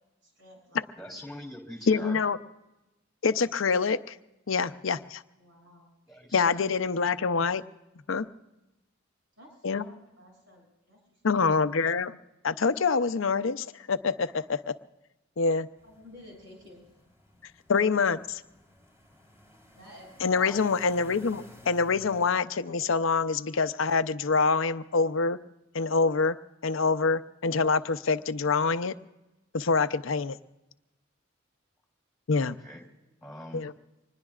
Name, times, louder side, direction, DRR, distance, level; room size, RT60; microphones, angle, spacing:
voice 1, 0.2-1.2 5.4-6.0 9.4-11.2 11.5-11.7 15.8-16.8 19.7-20.1, left 1 dB, 70° right, 0 dB, 7.2 m, -52 dB
voice 2, 1.0-2.2 6.1-6.5 20.3-20.6 32.4-32.8 33.2-33.7, left 1 dB, ahead, 1 dB, 3.3 m, -43 dB
voice 3, 1.9-2.4 3.2-4.2 4.5-5.2 6.3-7.6 8.1-8.3 9.6-9.8 11.2-12.2 12.4-14.8 15.4-15.7 17.7-18.4 20.2-25.4 25.7-26.4 26.6-28.9 29.5-30.4 32.3-32.6 33.5-33.7, left 4 dB, 80° left, 12 dB, 0.7 m, -26 dB
sound 1, 15.8-22.3, left 1 dB, 15° right, 3.5 m, -55 dB
25.5 x 20.5 x 2.4 m, 0.99 s
head